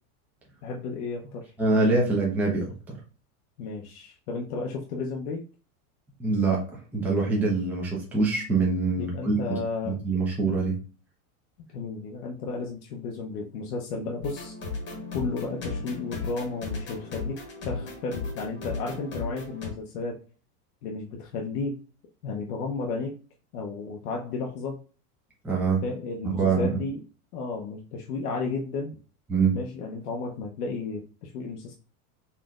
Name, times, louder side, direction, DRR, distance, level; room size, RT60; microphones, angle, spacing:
voice 1, 0.6-1.4 3.6-5.4 9.0-10.0 11.7-14.5 15.1-17.4 17.6-20.2 20.8-21.8 22.2-23.1 23.5-24.8 25.8-27.0 27.3-29.0 29.5-31.7, left 4 dB, 85° left, -1 dB, 0.9 m, -33 dB
voice 2, 1.6-3.0 6.2-6.6 6.9-9.4 9.8-10.7 25.4-25.8 26.2-26.8 29.3-29.5, right 3 dB, 5° right, -4 dB, 0.7 m, -24 dB
sound 1, 14.2-19.7, left 4 dB, 25° left, 1.1 m, -35 dB
4.1 x 3.2 x 2.4 m, 0.37 s
supercardioid pair, 140°, 45 cm